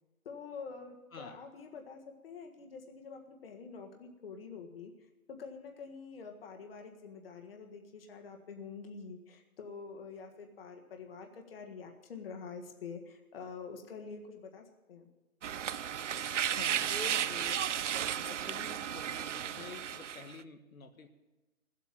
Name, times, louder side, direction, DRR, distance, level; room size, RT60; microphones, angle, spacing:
voice 1, 0.2-4.9 5.3-15.1, left 5 dB, 45° left, 3 dB, 1.7 m, -47 dB
sound 1, 15.4-20.4, right 9 dB, 60° right, 0.5 m, -34 dB
voice 2, 16.5-17.6 17.9-21.1, left 5 dB, 75° left, 5 dB, 1.5 m, -48 dB
16.0 x 8.4 x 7.5 m, 1.1 s
hypercardioid pair, 160°, 42 cm